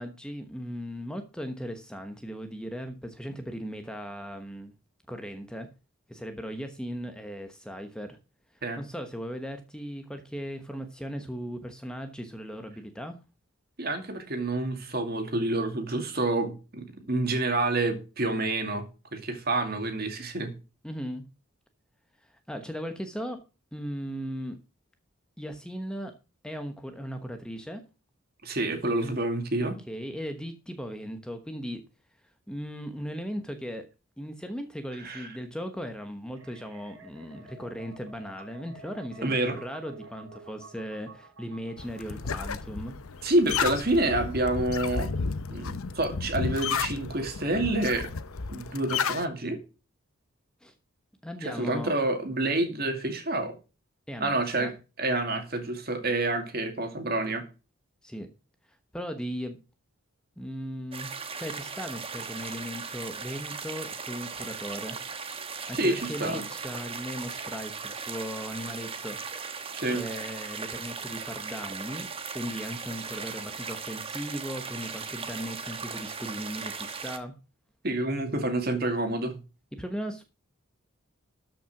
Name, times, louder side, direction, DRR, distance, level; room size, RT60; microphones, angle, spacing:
voice 1, 0.0-4.7 5.1-5.7 6.1-8.2 8.5-13.2 20.8-21.2 22.2-23.4 23.7-24.6 25.4-26.1 26.4-27.8 29.6-31.8 32.5-33.9 34.2-43.3 50.6-50.7 51.2-51.9 54.1-54.7 58.0-58.3 58.7-59.6 60.4-61.1 61.3-65.0 65.7-69.2 69.5-69.6 69.9-72.1 72.3-77.3 79.7-80.2, equal, 5° left, 1.0 m, -37 dB
voice 2, 13.8-18.8 19.1-20.5 28.4-29.8 35.0-35.3 39.2-39.6 43.2-45.1 45.5-48.1 48.5-49.6 51.4-53.5 54.2-54.7 55.0-57.4 65.7-66.4 69.8-70.0 77.8-79.4, right 2 dB, 45° right, 2.3 m, -28 dB
sound 1, 36.3-42.7, right 2 dB, 70° right, 2.7 m, -50 dB
sound 2, 41.8-49.2, left 5 dB, 80° left, 0.8 m, -32 dB
sound 3, 60.9-77.2, right 5 dB, 25° right, 1.1 m, -38 dB
13.0 x 5.8 x 5.9 m
head